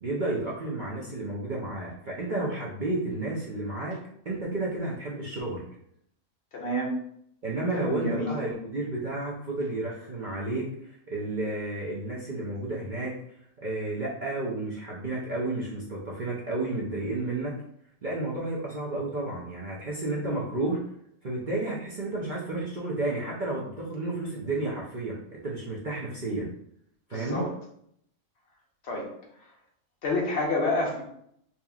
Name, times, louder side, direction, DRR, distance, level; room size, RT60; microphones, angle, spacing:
voice 1, 0.0-4.0 4.2-5.6 7.4-13.1 13.6-17.5 18.0-20.8 21.2-26.5 27.1-27.5, right 2 dB, 45° right, -4 dB, 0.7 m, -31 dB
voice 2, 6.5-6.9 7.7-8.3 27.1-27.5 28.9-29.1 30.0-31.0, left 1 dB, 50° left, -1 dB, 1.2 m, -28 dB
5.1 x 2.9 x 2.3 m, 0.69 s
omnidirectional pair, 1.5 m